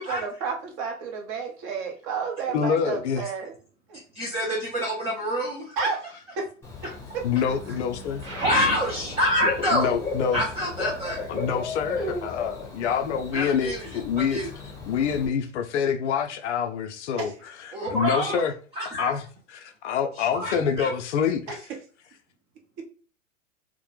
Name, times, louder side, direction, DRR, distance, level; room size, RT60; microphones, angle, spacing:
voice 1, 0.0-3.5 3.9-4.0 5.8-6.0 6.4-6.5 6.8-7.2 17.2-17.3 21.5-21.6 22.8-22.9, right 5 dB, 35° right, 0.7 m, -31 dB
voice 2, 2.5-3.2 7.2-8.4 9.7-10.4 11.3-14.4 14.9-17.3 17.9-18.5 19.0-19.2 19.5-21.6, left 7 dB, 65° left, 0.5 m, -26 dB
voice 3, 3.9-5.8 8.4-10.0 10.3-11.3 13.3-14.0 14.3-14.5 17.7-18.4 18.7-19.1 20.2-20.9, equal, 15° right, 0.3 m, -27 dB
Bird / Cricket, 6.6-15.3, left 3 dB, 5° left, 0.7 m, -36 dB
sound 1, 8.2-13.0 13.4-14.8, right 1 dB, 85° right, 1.1 m, -43 dB
2.1 x 2.0 x 2.9 m
figure-of-eight pair, 100°, 38 cm